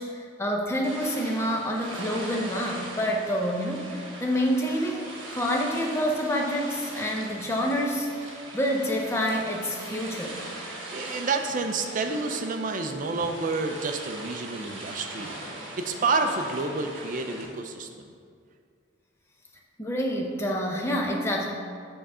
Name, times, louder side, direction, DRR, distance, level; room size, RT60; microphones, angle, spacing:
voice 1, 0.0-3.9 4.2-8.1 8.5-10.5 19.8-21.5, equal, 15° left, 0 dB, 0.6 m, -27 dB
sound 1, 0.8-17.5, right 1 dB, 65° right, 1.3 m, -40 dB
voice 2, 10.9-18.1, right 3 dB, 40° right, 5 dB, 0.4 m, -29 dB
5.7 x 3.7 x 5.4 m, 2.2 s
head